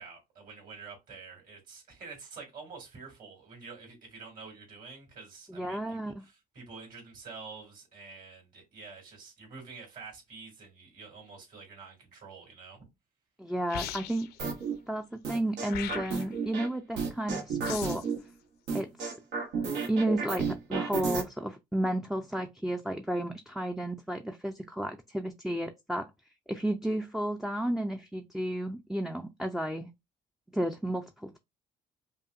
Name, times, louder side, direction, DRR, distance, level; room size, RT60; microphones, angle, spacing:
voice 1, 0.0-12.8, right 4 dB, 55° right, 2.4 m, -48 dB
voice 2, 5.5-6.2 13.4-14.3 14.9-18.0 18.7-19.1 19.9-26.1 26.5-29.9 30.5-31.4, right 1 dB, ahead, 0.3 m, -32 dB
sound 1, 13.7-14.4 15.7-16.4 17.6-18.1, left 10 dB, 70° left, 0.5 m, -39 dB
sound 2, 14.4-14.7 15.2-16.7 17.0-18.2 18.7-21.2, right 5 dB, 85° right, 1.2 m, -32 dB
5.3 x 2.2 x 2.4 m
cardioid pair, 110°, 17 cm